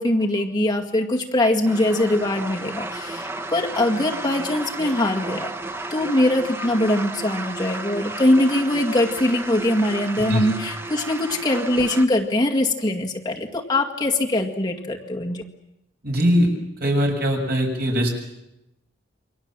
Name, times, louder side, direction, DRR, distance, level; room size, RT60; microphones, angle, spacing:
voice 1, 0.0-5.5 5.9-15.4, left 1 dB, 25° left, 0 dB, 2.1 m, -22 dB
sound 1, 1.7-12.0, right 2 dB, 15° right, 1.1 m, -33 dB
voice 2, 16.0-16.5 16.8-18.2, equal, 55° right, 2 dB, 6.9 m, -21 dB
29.0 x 24.0 x 7.5 m, 0.90 s
head